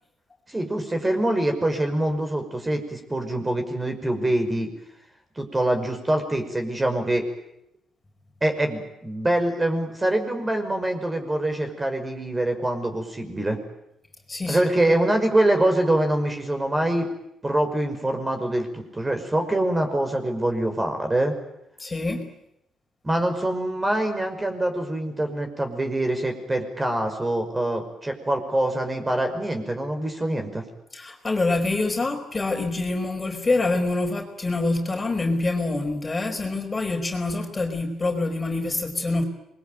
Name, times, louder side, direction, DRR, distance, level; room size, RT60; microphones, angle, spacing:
voice 1, 0.5-4.7 5.4-7.3 8.4-13.6 14.5-17.1 17.4-21.3 23.0-30.6, right 1 dB, 20° right, 5 dB, 5.7 m, -24 dB
voice 2, 14.3-14.6 21.8-22.3 30.9-39.2, left 2 dB, 25° left, 3 dB, 4.9 m, -26 dB
27.0 x 22.0 x 9.2 m, 0.82 s
cardioid pair, 90°, 0 cm